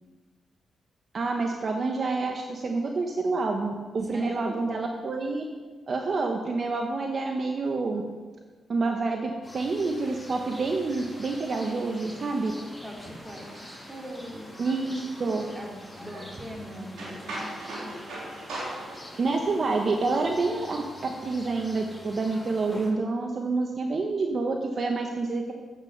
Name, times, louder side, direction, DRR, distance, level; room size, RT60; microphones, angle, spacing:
voice 1, 1.1-5.4 5.9-8.0 8.7-12.5 14.6-15.4 19.2-25.5, right 3 dB, 55° right, 3 dB, 1.1 m, -28 dB
voice 2, 4.1-4.8 12.8-14.5 15.5-18.0, equal, 20° right, -1 dB, 3.1 m, -41 dB
sound 1, 9.4-22.9, left 1 dB, 15° left, 2.6 m, -46 dB
sound 2, 9.7-19.2, right 1 dB, 80° right, 3.6 m, -43 dB
9.0 x 8.2 x 6.7 m, 1.4 s
supercardioid pair, 60°, 0 cm